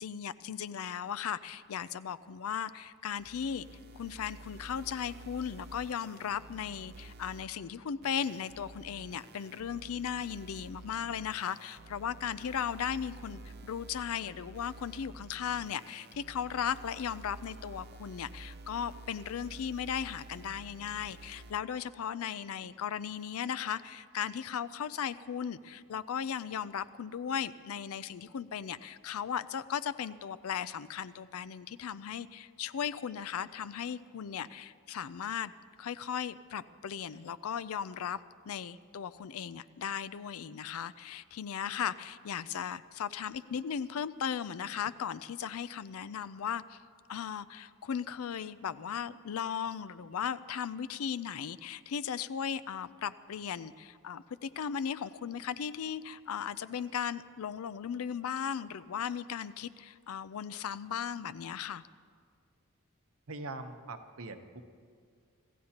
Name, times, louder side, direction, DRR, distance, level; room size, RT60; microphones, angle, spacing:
voice 1, 0.0-3.7 3.9-35.5 35.8-38.2 38.5-46.8 47.1-61.8, left 8 dB, 70° left, 16 dB, 0.4 m, -37 dB
sound 1, 3.2-7.4 8.0-21.5, right 2 dB, 45° right, 0.5 m, -50 dB
voice 2, 63.3-64.7, right 2 dB, 65° right, 7 dB, 0.9 m, -42 dB
25.5 x 15.0 x 2.9 m, 2.1 s
head